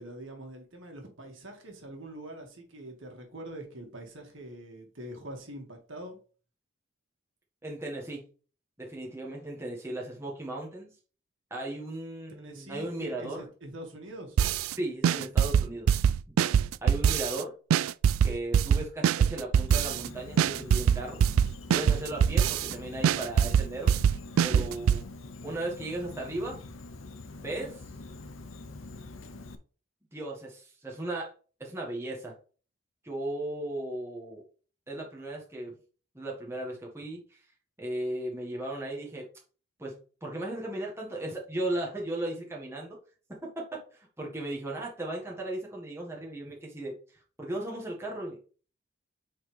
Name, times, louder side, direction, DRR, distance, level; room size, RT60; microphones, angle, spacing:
voice 1, 0.0-6.2 12.4-14.4 24.4-24.7, right 1 dB, 70° right, 2.0 m, -44 dB
voice 2, 7.6-8.2 8.8-11.0 11.5-13.4 14.8-15.9 16.8-17.5 18.2-21.2 21.7-23.9 24.4-25.0 25.4-26.6 27.4-27.8 30.1-31.3 31.6-32.4 33.0-34.4 34.9-35.7 36.2-37.4 37.8-39.3 39.8-43.0 43.7-46.9 47.4-48.4, right 1 dB, 10° right, 1.6 m, -36 dB
sound 1, 14.4-14.7 15.0-17.4 17.7-20.1 20.4-22.7 23.0-25.0, right 8 dB, 90° right, 0.3 m, -23 dB
Insect, 19.7-29.6, left 2 dB, 75° left, 0.8 m, -45 dB
8.5 x 4.2 x 3.4 m
head